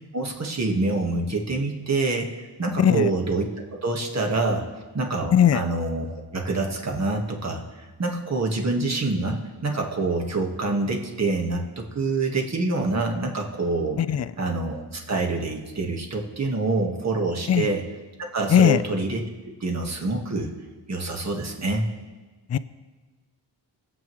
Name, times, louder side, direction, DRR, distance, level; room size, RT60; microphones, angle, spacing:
voice 1, 0.1-3.5 3.8-4.6 4.9-6.1 6.3-14.0 14.4-17.8 18.3-19.2 19.6-20.5 20.9-21.9, right 3 dB, 35° right, 1 dB, 1.5 m, -26 dB
voice 2, 2.8-3.1 5.3-5.6 14.0-14.3 17.5-17.7 18.5-18.8 22.5-22.6, left 9 dB, 40° left, 14 dB, 0.4 m, -18 dB
20.5 x 7.8 x 3.1 m, 1.3 s
wide cardioid pair, 110°, 44 cm